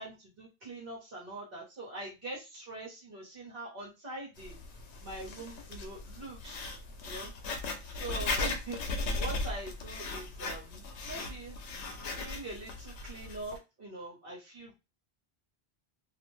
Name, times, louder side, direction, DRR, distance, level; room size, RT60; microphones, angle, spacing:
voice 1, 0.0-4.5 5.0-6.8 7.0-7.3 7.6-11.6 12.2-14.7, right 2 dB, 60° right, -5 dB, 1.1 m, -43 dB
Writing, 4.4-13.6, left 3 dB, 85° left, 0.9 m, -37 dB
2.6 x 2.1 x 3.0 m, 0.26 s
omnidirectional pair, 1.1 m